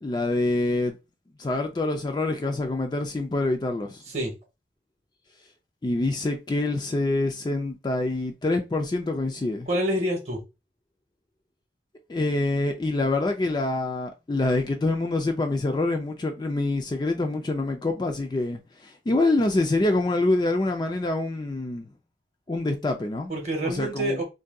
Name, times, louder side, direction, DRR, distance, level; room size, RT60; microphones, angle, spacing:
voice 1, 0.0-1.0 1.4-4.0 5.8-9.7 12.1-21.9 22.5-23.3 23.6-24.2, left 2 dB, 25° left, 0.3 m, -26 dB
voice 2, 9.7-10.4 23.3-24.2, right 1 dB, 35° right, 0.8 m, -27 dB
2.6 x 2.2 x 3.5 m
head